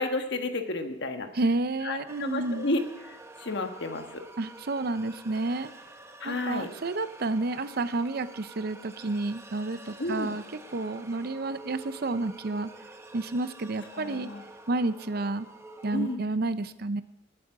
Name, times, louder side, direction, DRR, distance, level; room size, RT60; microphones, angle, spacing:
voice 1, 0.0-1.3 1.8-4.2 6.2-6.7 10.0-10.3 13.9-14.4 15.9-16.3, left 2 dB, 60° left, 6 dB, 1.3 m, -32 dB
voice 2, 1.3-2.7 4.4-5.7 6.2-10.4 10.7-12.7 13.1-14.3 14.7-15.5 15.8-17.0, right 2 dB, 50° right, 13 dB, 0.6 m, -30 dB
sound 1, 2.1-16.2, right 2 dB, 15° right, 0.9 m, -48 dB
19.5 x 8.5 x 4.8 m, 0.87 s
head